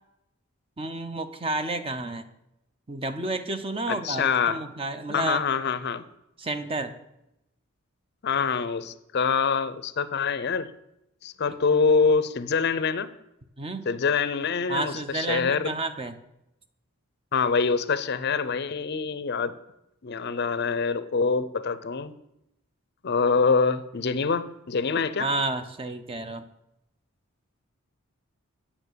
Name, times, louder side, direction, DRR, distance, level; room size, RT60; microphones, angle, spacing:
voice 1, 0.8-2.2 2.9-5.4 6.4-6.9 13.6-13.9 14.7-16.1 25.2-26.4, right 2 dB, 25° right, 10 dB, 0.7 m, -30 dB
voice 2, 3.9-4.6 5.1-6.0 8.2-10.7 11.2-13.1 13.9-15.7 17.3-19.5 20.0-22.1 23.0-25.3, left 5 dB, 50° left, 14 dB, 0.5 m, -25 dB
8.9 x 7.2 x 6.7 m, 0.86 s
head